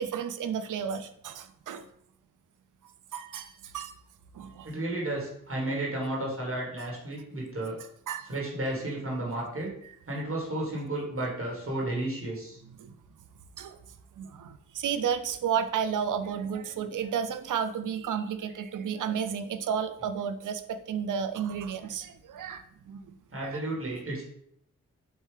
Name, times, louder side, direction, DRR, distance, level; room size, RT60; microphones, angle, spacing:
voice 1, 0.0-1.9 3.1-3.9 4.3-4.7 8.1-8.3 12.8-12.9 13.6-13.8 14.2-23.0 23.4-23.6, right 7 dB, 75° right, 10 dB, 0.5 m, -32 dB
voice 2, 4.6-7.8 8.3-9.7 10.1-12.6 23.3-24.2, right 1 dB, 45° right, -3 dB, 1.5 m, -32 dB
4.5 x 2.7 x 3.2 m, 0.70 s
cardioid pair, 40°, 31 cm